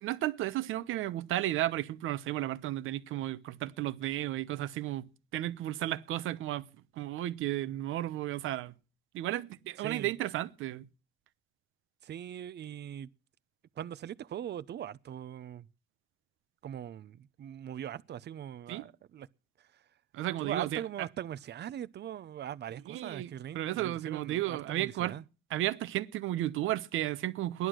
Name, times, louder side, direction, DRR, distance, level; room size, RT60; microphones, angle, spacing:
voice 1, 0.0-5.0 5.3-6.6 7.0-8.7 9.1-10.9 18.7-18.8 20.1-20.8 22.9-25.1 25.5-27.7, right 14 dB, 85° right, 0.9 m, -33 dB
voice 2, 9.8-10.1 12.0-13.1 13.8-15.7 16.6-19.3 20.4-25.2, right 10 dB, 60° right, 0.7 m, -41 dB
14.5 x 11.0 x 6.3 m
cardioid pair, 90°, 20 cm